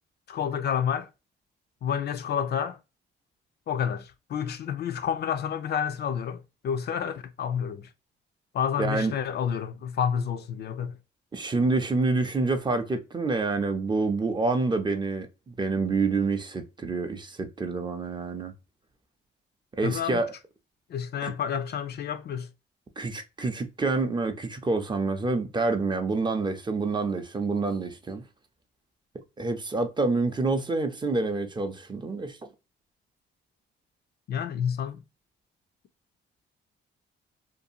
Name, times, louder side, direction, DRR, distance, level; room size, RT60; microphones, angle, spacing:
voice 1, 0.3-1.1 1.8-2.8 3.7-7.9 8.5-11.0 19.8-20.2 20.9-22.5 34.3-35.0, left 8 dB, 55° left, 0.4 m, -29 dB
voice 2, 8.8-9.1 11.3-18.5 19.7-20.3 21.2-21.3 23.0-28.2 29.4-32.5, right 3 dB, 25° right, 0.5 m, -27 dB
2.6 x 2.3 x 2.6 m
cardioid pair, 90°, 20 cm